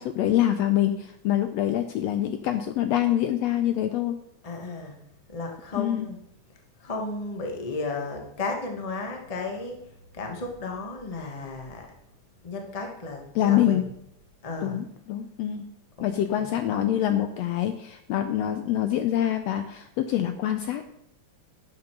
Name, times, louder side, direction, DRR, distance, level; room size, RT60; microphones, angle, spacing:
voice 1, 0.0-4.2 5.8-6.1 13.3-13.8 14.6-15.7 16.0-20.9, left 11 dB, 80° left, 8 dB, 1.5 m, -25 dB
voice 2, 4.4-5.0 5.3-6.2 6.5-11.9 12.4-13.9 14.4-14.8 16.0-16.5, left 3 dB, 30° left, 2 dB, 0.6 m, -34 dB
10.5 x 6.8 x 5.9 m, 0.78 s
omnidirectional pair, 3.5 m